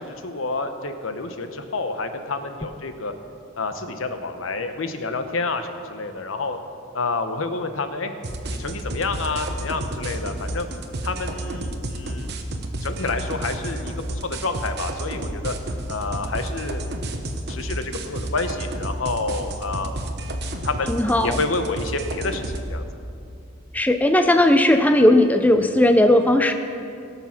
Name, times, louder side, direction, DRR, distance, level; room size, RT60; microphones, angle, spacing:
voice 1, 0.0-3.1 3.6-6.6 6.9-8.1 8.6-10.7 11.0-12.4 12.8-13.9 14.2-15.5 15.9-17.1 17.5-20.1 20.6-20.9 21.2-22.8, left 3 dB, 80° left, 8 dB, 0.9 m, -29 dB
sound 1, 8.2-22.7, right 1 dB, 55° right, 1.0 m, -31 dB
voice 2, 20.9-21.4 23.7-26.5, left 1 dB, 10° left, 7 dB, 0.4 m, -17 dB
18.0 x 7.0 x 5.8 m, 2.5 s
head